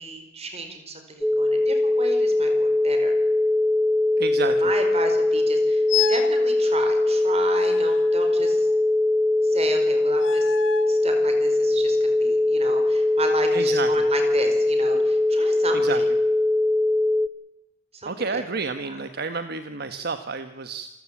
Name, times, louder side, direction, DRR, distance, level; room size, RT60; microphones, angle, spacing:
voice 1, 0.0-3.1 4.4-8.7 9.4-10.6 10.9-16.1 17.9-18.4 18.8-19.0, right 2 dB, 35° right, 6 dB, 4.8 m, -33 dB
sound 1, 1.2-17.3, left 2 dB, ahead, 0.7 m, -21 dB
voice 2, 4.2-4.5 13.5-14.0 15.7-16.0 18.0-20.9, right 4 dB, 55° right, 9 dB, 1.2 m, -30 dB
sound 2, 5.9-6.4 7.5-8.8 10.1-11.0, left 9 dB, 90° left, 1.5 m, -30 dB
27.5 x 14.5 x 8.8 m, 1.1 s
head